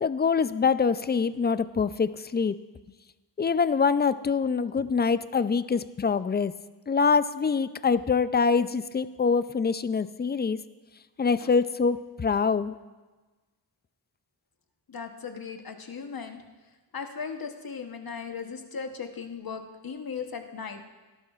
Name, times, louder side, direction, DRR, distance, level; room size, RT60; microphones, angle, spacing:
voice 1, 0.0-2.6 3.4-6.5 6.9-10.6 11.2-12.7, left 5 dB, 25° left, 14 dB, 0.3 m, -25 dB
voice 2, 14.9-16.4 16.9-20.8, left 6 dB, 55° left, 5 dB, 1.1 m, -37 dB
16.5 x 12.0 x 2.4 m, 1.2 s
wide cardioid pair, 70°, 43 cm